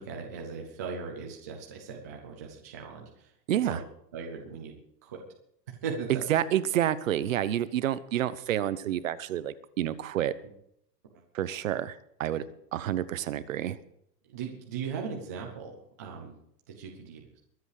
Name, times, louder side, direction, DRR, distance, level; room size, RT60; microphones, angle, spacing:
voice 1, 0.0-3.3 3.6-3.8 4.1-4.7 5.0-5.2 5.7-6.2 14.3-16.3 16.8-17.4, right 5 dB, 10° right, 0 dB, 0.5 m, -38 dB
voice 2, 3.5-3.8 6.1-10.3 11.3-12.4 12.7-13.8, right 11 dB, 50° right, 15 dB, 1.0 m, -29 dB
23.0 x 8.2 x 4.9 m, 0.71 s
supercardioid pair, 180°, 50 cm